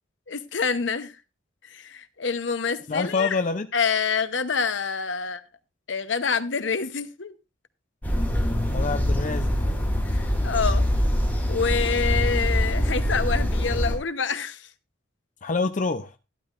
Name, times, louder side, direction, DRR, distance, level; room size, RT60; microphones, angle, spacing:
voice 1, 0.3-1.1 1.6-3.4 3.7-5.4 5.9-7.4 10.1-10.9 11.5-14.7, left 5 dB, 65° left, 0.9 m, -27 dB
voice 2, 2.9-3.7 8.7-9.5 15.4-16.1, left 4 dB, 40° left, 0.5 m, -26 dB
sound 1, 8.0-13.9, equal, 10° left, 3.1 m, -24 dB
12.0 x 12.0 x 2.5 m
head